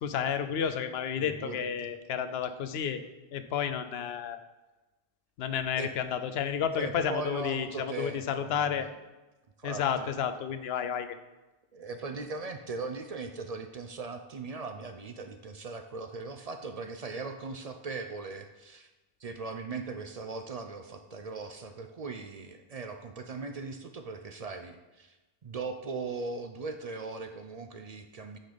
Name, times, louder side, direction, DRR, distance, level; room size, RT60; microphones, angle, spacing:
voice 1, 0.0-3.0 3.3-4.4 5.4-8.9 9.6-11.2, left 8 dB, 80° left, 10 dB, 0.8 m, -31 dB
voice 2, 1.2-2.0 5.8-5.9 6.7-8.7 9.6-10.1 11.7-18.9 19.2-25.2 25.4-28.4, right 3 dB, 50° right, 7 dB, 0.5 m, -39 dB
8.8 x 3.9 x 5.1 m, 1.1 s
omnidirectional pair, 1.0 m